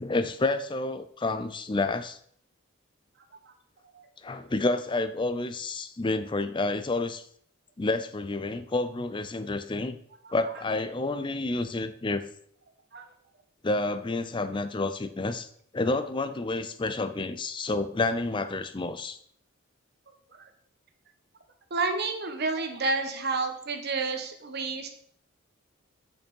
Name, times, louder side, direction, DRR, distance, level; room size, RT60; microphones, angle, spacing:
voice 1, 0.0-2.2 4.2-7.3 7.8-10.0 10.3-12.2 13.6-15.5 15.7-19.2, left 2 dB, 25° left, 11 dB, 0.5 m, -29 dB
voice 2, 21.7-24.9, right 3 dB, 50° right, 6 dB, 1.1 m, -30 dB
7.0 x 5.4 x 5.4 m, 0.63 s
head